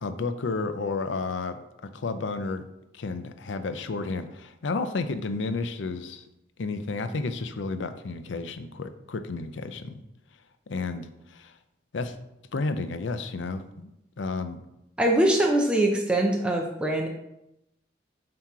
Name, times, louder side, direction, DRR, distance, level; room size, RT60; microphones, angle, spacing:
voice 1, 0.0-2.6 2.9-6.2 6.6-10.0 10.7-11.5 11.9-12.2 12.5-13.9 14.2-14.6, left 3 dB, 85° left, 9 dB, 0.5 m, -32 dB
voice 2, 15.0-17.1, right 1 dB, 5° right, 0 dB, 0.5 m, -23 dB
7.4 x 2.9 x 4.7 m, 0.85 s
head